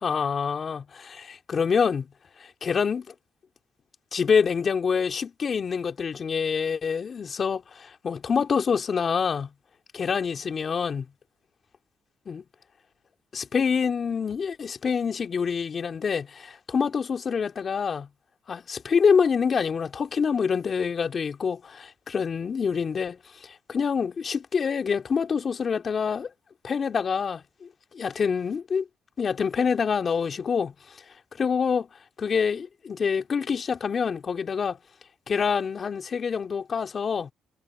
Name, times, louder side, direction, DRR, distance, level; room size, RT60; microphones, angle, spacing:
voice 1, 0.0-2.1 2.4-3.1 4.1-9.5 9.9-11.0 12.2-12.4 13.3-18.1 18.5-26.3 26.6-27.7 27.9-28.8 29.2-30.7 31.3-31.8 32.2-34.8 35.3-37.3, left 6 dB, 45° left, 3.4 m, -26 dB
supercardioid pair, 70°, 0 cm